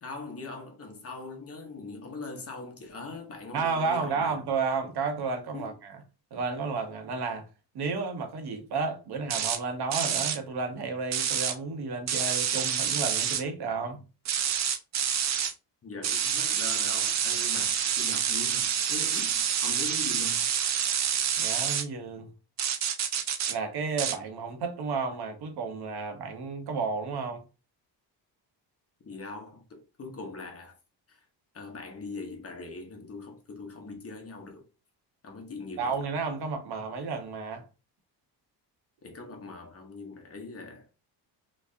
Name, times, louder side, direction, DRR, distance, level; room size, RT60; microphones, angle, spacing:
voice 1, 0.0-4.4 5.5-5.7 15.8-20.5 29.0-30.8 31.1-31.3 31.5-34.6 35.2-36.0 39.0-40.9, left 3 dB, 35° left, 1.0 m, -41 dB
voice 2, 3.5-6.0 6.3-7.5 7.7-14.0 21.4-22.3 23.5-27.4 35.8-37.6, right 4 dB, 65° right, 0.9 m, -32 dB
sound 1, 9.3-9.6 9.9-10.4 11.1-11.5 12.1-13.4 14.2-15.5 16.0-21.8 22.6-23.5 24.0-24.2, right 8 dB, 40° right, 0.5 m, -28 dB
3.3 x 3.1 x 2.6 m
cardioid pair, 125°, 42 cm